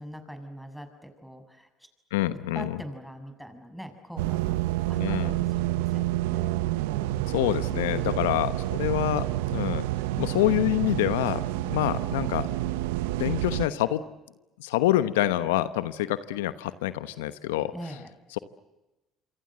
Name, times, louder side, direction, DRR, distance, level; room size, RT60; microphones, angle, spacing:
voice 1, 0.0-1.9 2.5-6.6 17.7-18.1, equal, ahead, 8 dB, 6.8 m, -42 dB
voice 2, 2.1-2.7 5.0-5.3 7.3-9.8 10.2-12.5 13.2-14.0 14.6-17.7, left 14 dB, 85° left, 13 dB, 1.0 m, -26 dB
sound 1, 4.2-13.7, right 16 dB, 85° right, 0.9 m, -28 dB
28.0 x 25.0 x 7.7 m, 1.0 s
hypercardioid pair, 65°, 0 cm